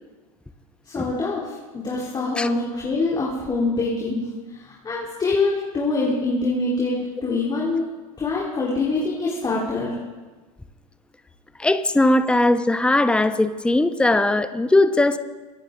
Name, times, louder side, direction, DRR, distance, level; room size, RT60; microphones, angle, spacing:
voice 1, 0.9-7.8 8.2-10.0, left 3 dB, 20° left, -5 dB, 3.7 m, -25 dB
voice 2, 11.6-15.2, left 2 dB, 5° left, 10 dB, 0.8 m, -19 dB
24.5 x 10.5 x 3.8 m, 1.3 s
hypercardioid pair, 95°, 19 cm